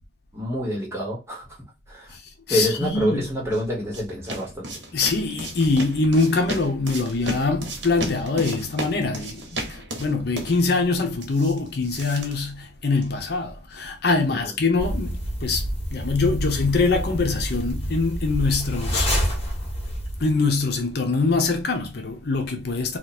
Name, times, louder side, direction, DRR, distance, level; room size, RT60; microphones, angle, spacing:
voice 1, 0.3-1.6 1.9-2.1 2.5-4.7 14.3-14.5, equal, 15° right, 1.3 m, -27 dB
voice 2, 2.5-3.2 4.9-15.6 15.9-19.1 20.2-23.0, left 3 dB, 60° left, 0.7 m, -23 dB
sound 1, 3.2-13.2, right 1 dB, 75° right, 1.1 m, -35 dB
sound 2, 14.8-20.4, equal, 35° left, 1.6 m, -28 dB
2.9 x 2.4 x 4.2 m
head